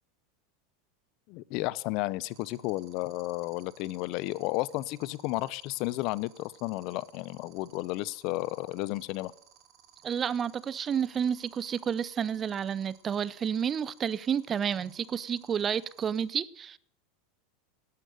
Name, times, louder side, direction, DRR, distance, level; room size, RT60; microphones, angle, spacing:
voice 1, 1.3-9.3, left 19 dB, 50° left, 0.5 m, -33 dB
sound 1, 2.3-16.2, right 10 dB, 40° right, 2.6 m, -58 dB
voice 2, 10.0-16.8, right 8 dB, 25° right, 0.4 m, -30 dB
12.5 x 9.3 x 6.6 m
supercardioid pair, 135°, 0 cm